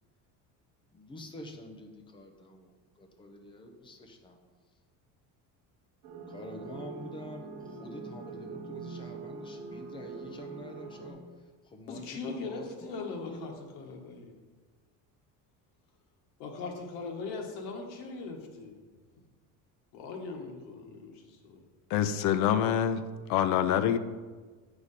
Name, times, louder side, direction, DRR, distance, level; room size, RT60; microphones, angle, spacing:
voice 1, 0.9-4.4 6.3-13.6, left 1 dB, 15° left, 3 dB, 0.7 m, -47 dB
sound 1, 6.0-11.1, right 4 dB, 70° right, 1.2 m, -43 dB
voice 2, 11.9-14.3 16.4-18.7 19.9-21.7, left 4 dB, 80° left, 2 dB, 1.4 m, -40 dB
voice 3, 21.9-23.0 23.3-24.0, left 9 dB, 50° left, 12 dB, 0.5 m, -25 dB
8.6 x 4.8 x 4.1 m, 1.4 s
cardioid pair, 175°, 37 cm